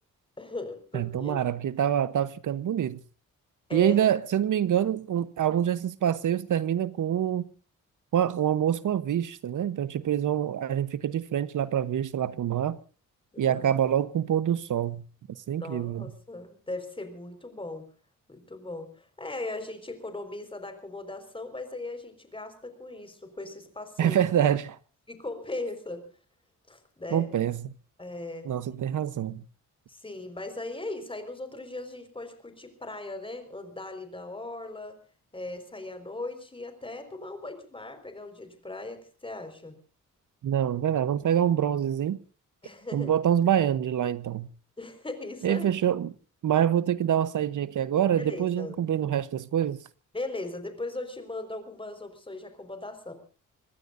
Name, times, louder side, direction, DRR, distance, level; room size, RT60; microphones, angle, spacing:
voice 1, 0.4-1.3 3.7-4.0 13.3-13.7 15.6-17.9 18.3-24.2 25.1-26.0 26.7-27.3 28.0-28.5 29.9-35.0 35.3-39.8 42.6-43.1 44.8-45.7 48.2-48.8 50.1-53.1, left 2 dB, 15° left, 4.9 m, -38 dB
voice 2, 0.9-3.0 3.7-7.5 8.1-12.8 13.4-15.0 15.5-16.1 24.0-24.8 27.1-27.7 28.4-29.4 40.4-42.2 42.9-44.5 45.4-46.1 46.4-49.8, right 10 dB, 70° right, 1.0 m, -26 dB
26.0 x 21.0 x 2.6 m
wide cardioid pair, 125°, 32 cm